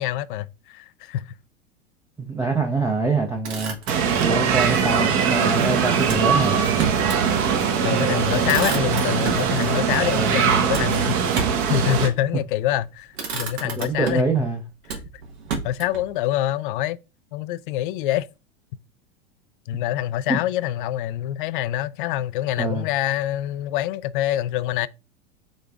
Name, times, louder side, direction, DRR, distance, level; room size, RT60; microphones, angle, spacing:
voice 1, 0.0-1.3 7.8-14.2 14.9-15.0 15.6-17.0 17.3-18.3 19.7-24.9, left 13 dB, 50° left, 0.4 m, -25 dB
voice 2, 2.2-6.6 7.9-8.0 10.0-10.4 13.8-14.6 20.3-20.4 22.6-22.9, right 3 dB, 10° right, 0.6 m, -25 dB
Motor vehicle (road), 3.2-4.5 6.0-7.3 7.7-7.8 8.1-9.5 10.7-11.7 12.6-12.8 13.1-14.4 14.9-16.1, right 5 dB, 65° right, 1.4 m, -31 dB
sound 1, 3.9-12.1, right 7 dB, 40° right, 0.9 m, -21 dB
5.1 x 3.7 x 2.3 m
figure-of-eight pair, 90°, 33 cm